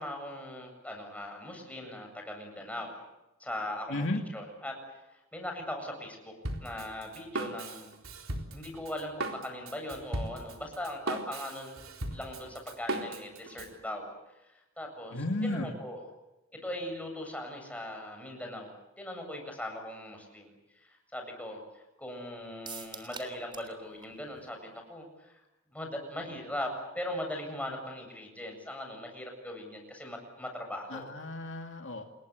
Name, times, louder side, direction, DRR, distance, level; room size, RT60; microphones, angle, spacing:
voice 1, 0.0-2.9 3.4-4.0 4.3-4.8 5.1-7.9 8.5-11.8 12.1-14.1 14.4-16.0 16.5-25.4 25.7-31.1, left 1 dB, 5° left, 3 dB, 7.9 m, -40 dB
voice 2, 3.9-4.2 15.1-15.7 30.9-32.0, left 1 dB, 65° left, 3 dB, 2.5 m, -33 dB
Drum kit, 6.4-13.7, right 2 dB, 80° right, 4.0 m, -38 dB
sound 1, 22.7-23.8 24.0-24.1 24.5-24.6, right 5 dB, 25° right, 3.4 m, -44 dB
29.0 x 21.5 x 8.3 m, 0.97 s
head